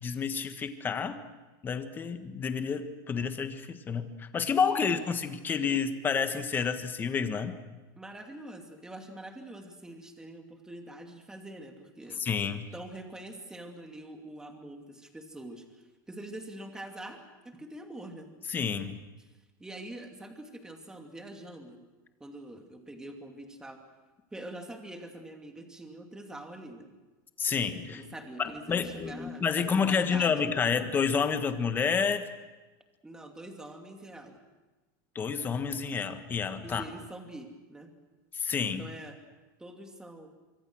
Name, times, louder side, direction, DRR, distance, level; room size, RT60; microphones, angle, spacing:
voice 1, 0.0-1.2 1.6-7.6 12.2-12.6 18.5-19.0 27.4-28.0 28.4-32.2 35.1-36.8 38.3-38.9, left 6 dB, 20° left, 9 dB, 1.5 m, -29 dB
voice 2, 4.7-5.0 8.0-12.2 12.7-17.2 17.4-18.3 19.6-21.8 22.2-23.8 24.3-26.9 27.9-30.3 33.0-34.4 36.6-37.9 38.8-39.2 39.6-40.3, right 1 dB, 5° right, 4 dB, 2.6 m, -44 dB
25.0 x 24.5 x 6.3 m, 1.2 s
supercardioid pair, 155°, 11 cm